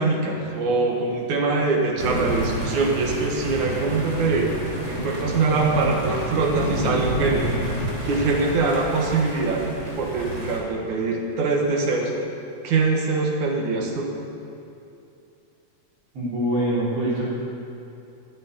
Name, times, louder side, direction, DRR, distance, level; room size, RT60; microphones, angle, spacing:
voice 1, 0.0-4.5 4.9-7.5 8.0-12.1 12.6-14.1, right 3 dB, 75° right, 0 dB, 2.9 m, -23 dB
sound 1, 2.0-10.6, right 1 dB, 20° right, 3.7 m, -29 dB
voice 2, 16.1-17.3, right 1 dB, 50° right, -8 dB, 4.8 m, -24 dB
10.5 x 7.6 x 9.6 m, 2.8 s
omnidirectional pair, 3.5 m